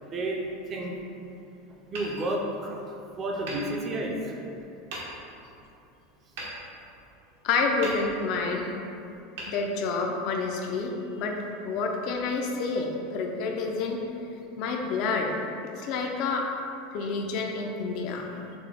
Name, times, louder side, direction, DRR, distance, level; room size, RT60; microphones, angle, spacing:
voice 1, 0.0-0.4 0.7-0.9 1.9-2.8 3.2-4.4, right 1 dB, 25° right, 0 dB, 0.5 m, -31 dB
Hammer, 1.9-2.9 3.4-4.4 4.9-5.5 6.4-7.3 7.8-8.5 9.3-10.3, right 1 dB, 80° right, 1.0 m, -41 dB
voice 2, 7.4-8.7 9.5-11.4 11.6-14.0 14.6-15.3 15.8-16.5 16.9-18.3, left 4 dB, 50° left, 1 dB, 0.4 m, -28 dB
6.0 x 2.2 x 3.3 m, 2.8 s
supercardioid pair, 155°, 0 cm